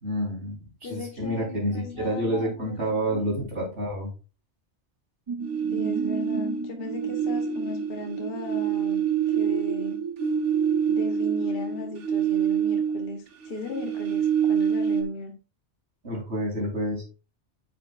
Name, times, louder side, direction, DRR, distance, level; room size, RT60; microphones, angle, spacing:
voice 1, 0.0-4.1 16.0-17.0, right 1 dB, 65° right, -3 dB, 4.3 m, -29 dB
voice 2, 0.8-2.5 2.8-3.1 5.7-9.0 9.3-10.0 10.9-15.3, left 3 dB, 55° left, 3 dB, 1.3 m, -37 dB
sound 1, 5.3-12.6 13.1-13.2, right 5 dB, 45° right, 0.3 m, -35 dB
sound 2, 5.4-6.7 7.1-13.2 13.4-15.0, right 7 dB, 80° right, 1.5 m, -26 dB
10.0 x 6.8 x 2.4 m, 0.32 s
omnidirectional pair, 1.2 m